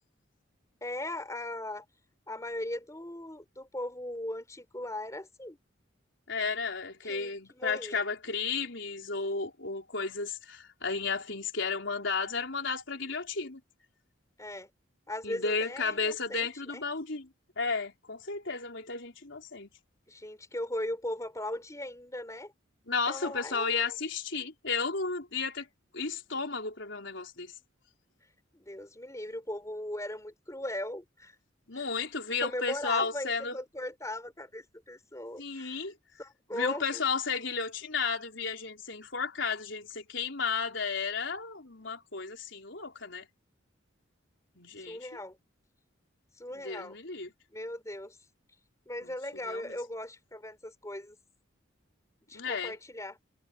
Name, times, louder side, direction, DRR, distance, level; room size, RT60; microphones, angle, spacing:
voice 1, 0.8-1.9 2.3-5.6 7.0-8.0 14.4-14.7 15.1-16.5 16.7-16.8 20.1-22.5 23.1-23.9 28.5-31.4 31.7-31.9 32.4-35.8 36.2-37.0 44.8-45.4 46.4-47.0 47.5-48.2 48.9-51.2 52.3-53.2, left 1 dB, 15° left, 3.9 m, -38 dB
voice 2, 6.3-13.6 15.2-17.3 17.6-19.7 22.9-25.7 25.9-27.5 31.7-33.6 35.4-35.9 36.5-43.3 44.6-45.1 46.5-47.3 49.0-49.1 49.5-49.8 52.3-52.7, left 4 dB, 65° left, 4.2 m, -33 dB
head